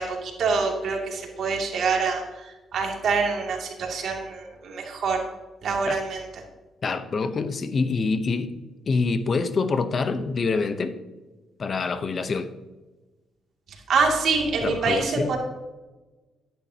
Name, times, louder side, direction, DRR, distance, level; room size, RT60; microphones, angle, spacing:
voice 1, 0.0-5.2 5.6-6.4 13.9-15.4, right 4 dB, 65° right, 0 dB, 2.5 m, -26 dB
voice 2, 6.8-8.6 8.9-11.0 11.6-12.5 14.6-15.3, left 4 dB, 45° left, 11 dB, 0.8 m, -26 dB
12.5 x 10.5 x 2.9 m, 1.2 s
cardioid pair, 90°, 0 cm